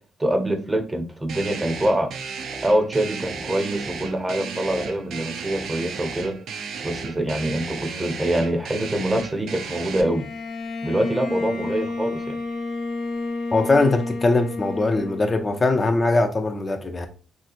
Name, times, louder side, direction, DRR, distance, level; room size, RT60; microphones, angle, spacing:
voice 1, 0.2-2.1 2.6-6.3 6.8-10.3 10.8-12.4, right 1 dB, 15° right, 0.6 m, -24 dB
sound 1, 1.3-10.0, right 5 dB, 75° right, 0.4 m, -34 dB
Bowed string instrument, 10.0-15.7, left 3 dB, 75° left, 0.8 m, -31 dB
voice 2, 13.5-17.1, left 2 dB, 30° left, 0.4 m, -21 dB
3.2 x 2.8 x 2.5 m
cardioid pair, 90°, 0 cm